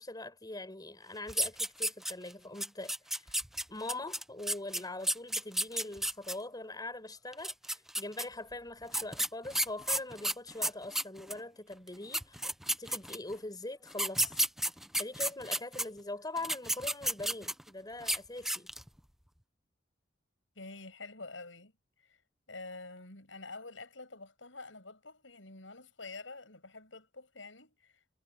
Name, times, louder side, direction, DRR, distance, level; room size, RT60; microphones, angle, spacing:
voice 1, 0.0-3.4 3.7-12.5 12.8-14.5 15.0-18.7, left 2 dB, 20° left, 4.9 m, -42 dB
sound 1, 1.3-2.3 2.6-6.3 7.3-8.2 8.9-11.4 11.9-12.0 12.1-13.3 13.9-15.8 16.4-17.7 18.0-18.2 18.5-18.9, right 1 dB, ahead, 0.7 m, -32 dB
voice 2, 20.6-21.7 22.1-22.2 22.5-28.0, left 3 dB, 90° left, 7.5 m, -47 dB
head